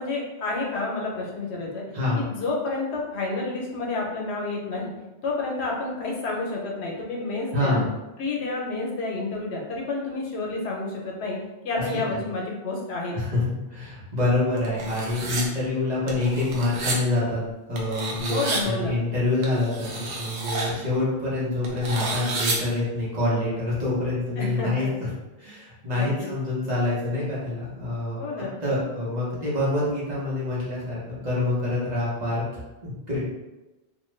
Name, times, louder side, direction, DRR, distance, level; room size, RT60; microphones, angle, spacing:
voice 1, 0.0-1.8 2.2-4.9 5.2-7.8 8.2-11.4 11.6-13.2 18.3-19.0 24.4-24.9 25.9-26.3 28.2-28.6, left 3 dB, 80° left, -2 dB, 1.0 m, -29 dB
voice 2, 7.5-7.8 11.7-11.8 12.1-12.2 13.1-17.4 17.7-25.1 25.4-33.2, left 2 dB, 40° right, -8 dB, 1.0 m, -26 dB
sound 1, 14.6-15.4 16.1-17.0 17.8-18.6 19.4-20.7 21.6-22.6, right 3 dB, 85° right, 0.9 m, -30 dB
2.6 x 2.3 x 3.1 m, 1.1 s
omnidirectional pair, 1.1 m